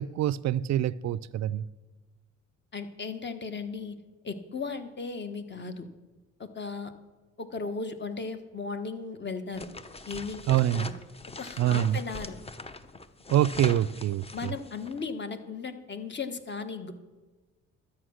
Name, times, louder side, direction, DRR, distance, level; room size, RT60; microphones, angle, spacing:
voice 1, 0.0-1.6 10.5-10.9 11.6-12.0 13.3-14.5, right 12 dB, 65° right, 0.5 m, -25 dB
voice 2, 2.7-3.9 4.2-5.9 6.4-6.9 7.4-9.7 10.1-10.4 10.7-10.9 11.4-12.4 14.3-16.9, left 4 dB, 35° left, 1.4 m, -36 dB
sound 1, 9.5-15.0, left 3 dB, 20° left, 0.9 m, -42 dB
12.5 x 8.6 x 6.4 m
cardioid pair, 90°, 30 cm